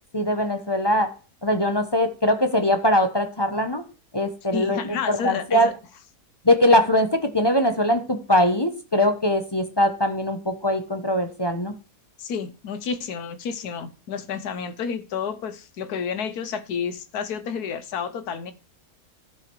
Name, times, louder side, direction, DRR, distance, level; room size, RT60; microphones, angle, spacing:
voice 1, 0.1-1.1 1.4-3.8 4.1-5.7 6.4-11.7, left 1 dB, 20° left, 0.7 m, -21 dB
voice 2, 4.5-5.7 12.2-18.5, left 6 dB, 75° left, 1.5 m, -30 dB
13.0 x 5.0 x 4.6 m
omnidirectional pair, 1.7 m